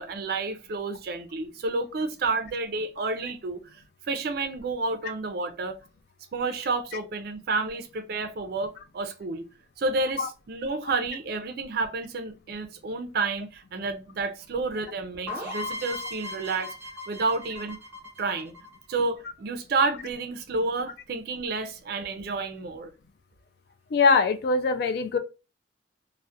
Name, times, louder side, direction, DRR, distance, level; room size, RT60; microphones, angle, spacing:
voice 1, 0.0-5.8 6.3-9.4 9.8-16.7 17.1-17.8 18.2-18.5 18.9-22.9, right 3 dB, 55° right, 0.4 m, -30 dB
sound 1, 15.3-19.0, left 2 dB, 15° right, 0.9 m, -37 dB
voice 2, 23.9-25.2, left 4 dB, 60° left, 0.3 m, -22 dB
2.3 x 2.1 x 2.6 m
head